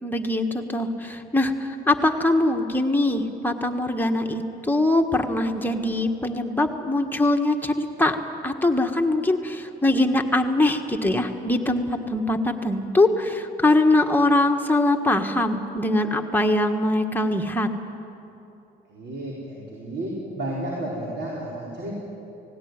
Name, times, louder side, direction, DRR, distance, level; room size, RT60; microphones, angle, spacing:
voice 1, 0.0-8.2 8.4-17.7, left 2 dB, 10° left, 3 dB, 1.6 m, -22 dB
voice 2, 18.9-21.9, right 1 dB, 60° right, -4 dB, 4.7 m, -32 dB
18.0 x 17.0 x 9.6 m, 2.9 s
cardioid pair, 90°, 20 cm